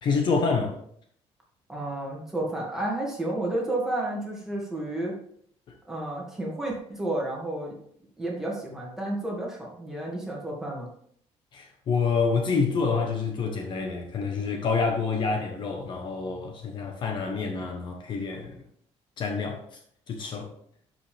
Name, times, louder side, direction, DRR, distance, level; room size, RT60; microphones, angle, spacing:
voice 1, 0.0-0.8 11.5-18.6 19.2-19.6 20.1-20.5, left 4 dB, 45° left, 1.2 m, -27 dB
voice 2, 1.7-5.1 5.9-7.8 8.2-10.9, right 1 dB, 5° right, 2.2 m, -31 dB
11.5 x 5.3 x 3.5 m
cardioid pair, 175°, 11 cm